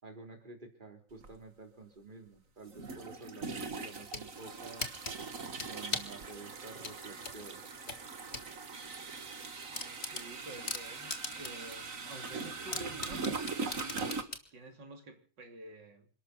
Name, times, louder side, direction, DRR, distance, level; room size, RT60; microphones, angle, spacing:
voice 1, 0.0-4.9 5.7-7.6, right 3 dB, 25° right, 3.7 m, -50 dB
sound 1, 1.2-1.3 2.7-14.2, right 4 dB, 50° right, 2.2 m, -41 dB
sound 2, 3.8-4.3 4.8-6.2 6.8-8.5 8.9-9.0 9.3-9.4 9.7-11.7 12.1-12.2 12.7-14.5, left 3 dB, 35° left, 2.3 m, -39 dB
voice 2, 9.7-16.1, right 2 dB, 80° right, 3.6 m, -50 dB
28.0 x 12.5 x 4.0 m
omnidirectional pair, 1.9 m